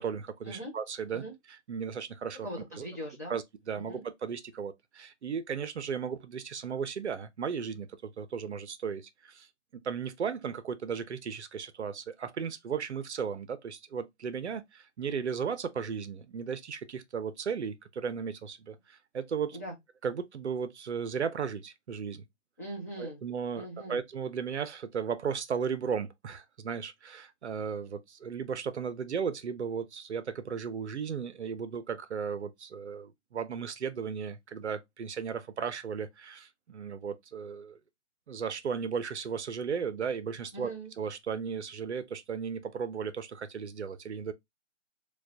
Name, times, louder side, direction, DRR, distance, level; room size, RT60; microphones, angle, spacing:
voice 1, 0.0-2.5 2.8-2.9 3.3-9.5 9.7-19.6 20.0-22.3 23.0-37.8 38.3-40.7 41.0-44.3, right 6 dB, 65° right, 0.6 m, -35 dB
voice 2, 2.4-3.4 3.8-4.0 19.5-19.7 22.6-23.2 23.5-24.0 40.5-40.9, right 1 dB, 15° left, 0.5 m, -40 dB
4.4 x 2.3 x 2.6 m
figure-of-eight pair, 145°, 37 cm